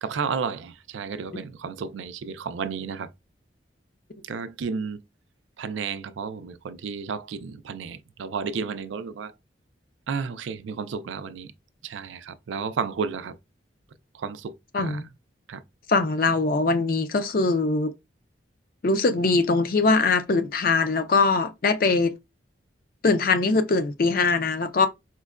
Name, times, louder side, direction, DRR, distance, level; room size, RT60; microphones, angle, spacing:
voice 1, 0.0-3.1 4.2-5.0 5.6-9.3 10.1-11.5 11.8-13.4 14.1-15.0 15.5-15.6, right 5 dB, 85° right, 0.4 m, -32 dB
voice 2, 14.7-15.1 15.9-17.9 18.8-22.2 23.0-24.9, left 3 dB, 50° left, 0.5 m, -22 dB
4.4 x 2.1 x 2.4 m
head